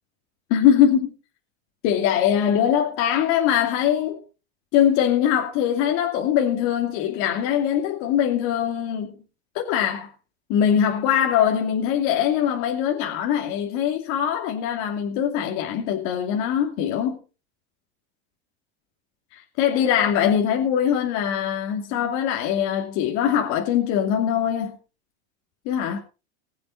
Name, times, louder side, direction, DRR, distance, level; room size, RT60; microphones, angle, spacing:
voice 1, 0.5-1.1 1.8-4.2 4.7-9.1 9.5-10.1 10.5-17.2 19.3-24.8 25.6-26.0, left 9 dB, 60° left, 2.7 m, -22 dB
21.0 x 7.7 x 4.4 m
supercardioid pair, 135°, 33 cm